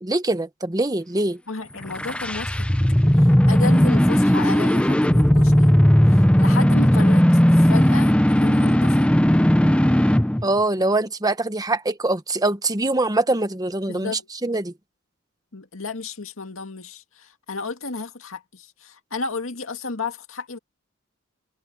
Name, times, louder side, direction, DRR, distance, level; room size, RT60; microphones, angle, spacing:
voice 1, 0.0-1.4 10.4-14.7, right 2 dB, 20° right, 1.2 m, -23 dB
voice 2, 1.5-2.7 3.1-5.7 6.1-9.1 13.9-14.3 15.5-20.6, left 3 dB, 80° left, 2.2 m, -33 dB
sound 1, 1.8-10.4, equal, 5° left, 0.7 m, -17 dB
head